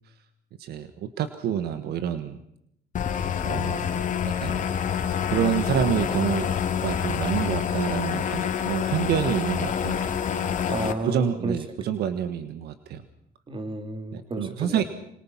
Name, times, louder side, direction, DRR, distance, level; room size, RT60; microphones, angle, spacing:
voice 1, 0.6-2.4 3.4-4.7 5.3-6.5 6.8-10.0 11.0-13.0 14.1-14.8, right 9 dB, 70° right, 10 dB, 1.5 m, -28 dB
sound 1, 2.9-10.9, left 8 dB, 50° left, 2.3 m, -27 dB
voice 2, 10.7-11.5 13.5-14.9, right 2 dB, 30° right, 7 dB, 3.6 m, -32 dB
26.0 x 26.0 x 5.9 m, 0.76 s
cardioid pair, 110°, 17 cm